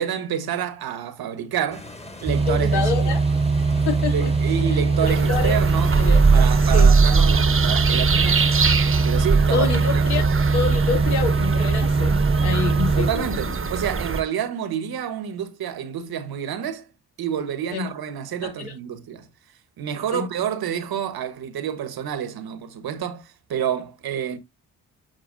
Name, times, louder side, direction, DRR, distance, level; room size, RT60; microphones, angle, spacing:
voice 1, 0.0-1.9 2.2-3.1 4.1-5.9 6.3-8.5 9.0-9.7 9.9-10.0 13.0-16.9 17.2-19.3 19.8-24.4, right 9 dB, 70° right, 1.3 m, -28 dB
sound 1, 1.7-6.9, left 1 dB, 15° left, 1.6 m, -40 dB
sound 2, 2.3-13.1, right 4 dB, 15° right, 0.6 m, -21 dB
voice 2, 2.5-3.2 3.9-4.3 4.7-4.8 5.3-5.6 5.9-6.2 6.7-6.9 9.5-10.2 10.5-13.5 17.7-17.9 18.4-18.7 20.1-20.3, left 5 dB, 80° left, 2.3 m, -27 dB
sound 3, 5.0-14.2, right 4 dB, 35° right, 1.0 m, -21 dB
7.7 x 4.7 x 2.6 m
supercardioid pair, 45°, 38 cm